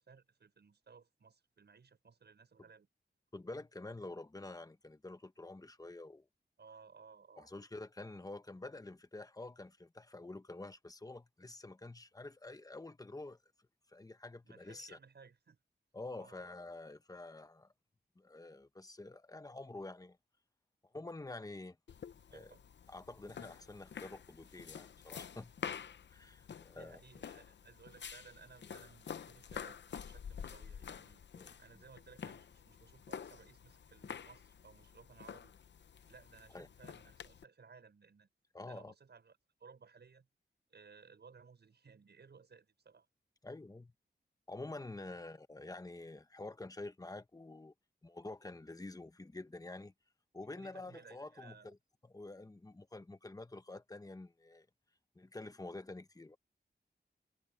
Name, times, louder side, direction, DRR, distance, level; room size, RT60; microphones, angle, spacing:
voice 1, 0.0-2.9 6.6-7.5 14.4-15.6 16.2-16.4 22.3-22.6 26.5-31.2 31.6-35.5 36.1-38.3 38.7-40.3 40.7-43.1 45.0-45.2 50.3-51.7, right 5 dB, 75° right, 6.5 m, -60 dB
voice 2, 3.3-6.3 7.4-13.4 13.9-15.0 15.9-17.7 18.2-20.2 20.9-21.8 22.3-22.5 22.9-25.5 26.1-27.0 31.3-31.5 36.5-36.7 38.5-38.9 43.4-43.9 44.5-47.7 48.0-49.9 50.3-51.8 52.0-54.7 55.1-56.4, left 2 dB, 20° left, 1.1 m, -48 dB
sound 1, 21.9-37.4, left 7 dB, 90° left, 0.7 m, -49 dB
wide cardioid pair, 110°, 18 cm